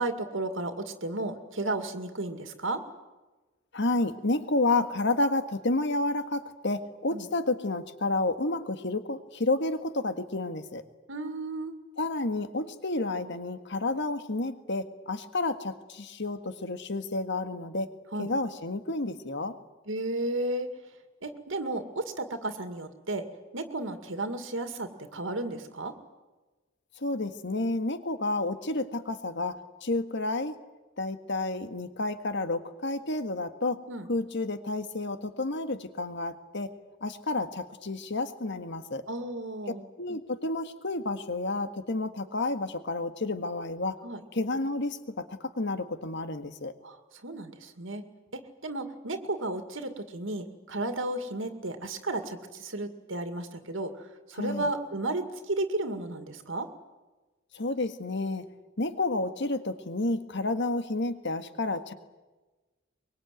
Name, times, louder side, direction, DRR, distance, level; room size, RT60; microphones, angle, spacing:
voice 1, 0.0-2.8 7.1-7.3 11.1-11.7 18.1-18.3 19.9-20.7 21.2-23.2 23.5-25.9 33.9-34.1 39.1-39.8 44.0-44.2 46.8-47.0 47.2-48.0 48.3-56.7, right 2 dB, 70° right, 7 dB, 2.2 m, -33 dB
voice 2, 3.7-10.8 12.0-17.9 18.2-19.5 27.0-30.5 31.0-33.8 34.1-36.7 37.0-39.0 40.0-44.0 44.3-46.7 54.3-54.7 57.5-58.5 58.8-61.9, left 2 dB, 60° left, 9 dB, 1.7 m, -30 dB
24.0 x 22.5 x 9.3 m, 1.2 s
head